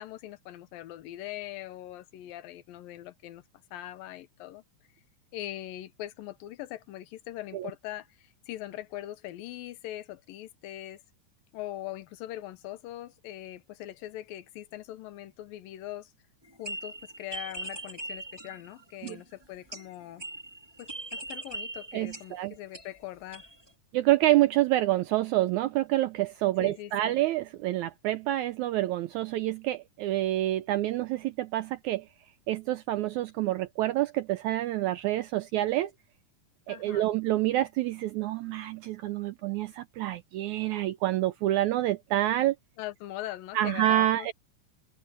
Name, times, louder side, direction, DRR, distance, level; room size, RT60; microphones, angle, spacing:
voice 1, 0.0-3.4 3.7-4.6 5.3-11.0 11.5-16.1 16.6-20.2 20.8-23.5 26.6-27.2 36.7-37.1 42.8-44.3, left 14 dB, 85° left, 2.7 m, -41 dB
sound 1, 16.4-19.4 19.7-23.0 23.3-23.7, right 2 dB, 5° right, 3.0 m, -40 dB
voice 2, 21.9-22.5 23.9-32.1 32.5-35.9 36.7-42.6 43.5-44.3, right 15 dB, 85° right, 1.7 m, -27 dB
omnidirectional pair, 4.0 m